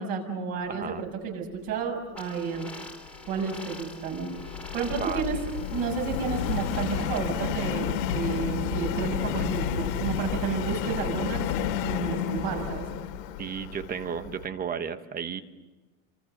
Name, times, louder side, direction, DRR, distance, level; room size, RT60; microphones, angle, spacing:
voice 1, 0.0-2.7 3.3-4.3 4.7-5.4 5.7-11.5 11.8-12.9, right 5 dB, 45° right, 2 dB, 6.8 m, -31 dB
voice 2, 0.7-1.0 4.9-5.4 13.4-15.4, right 7 dB, 20° right, 10 dB, 1.2 m, -34 dB
sound 1, 2.1-7.2, left 2 dB, 5° left, 3.0 m, -44 dB
Subway metro underground, 3.1-14.4, left 9 dB, 85° left, 3.0 m, -31 dB
29.0 x 26.5 x 6.7 m, 1.2 s
supercardioid pair, 165°, 47 cm